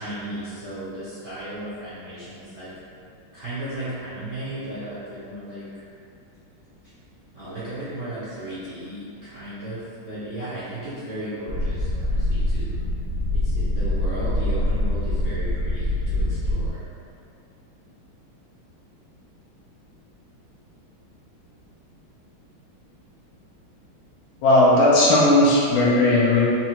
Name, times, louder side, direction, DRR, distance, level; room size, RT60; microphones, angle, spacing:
voice 1, 0.0-2.7 3.3-5.8 7.3-12.7 13.3-16.8, right 1 dB, 55° right, -13 dB, 0.8 m, -35 dB
sound 1, 11.5-16.7, left 1 dB, 75° right, 1.1 m, -24 dB
voice 2, 24.4-26.4, left 1 dB, 80° left, -6 dB, 1.6 m, -16 dB
4.6 x 2.7 x 2.9 m, 2.6 s
omnidirectional pair, 2.3 m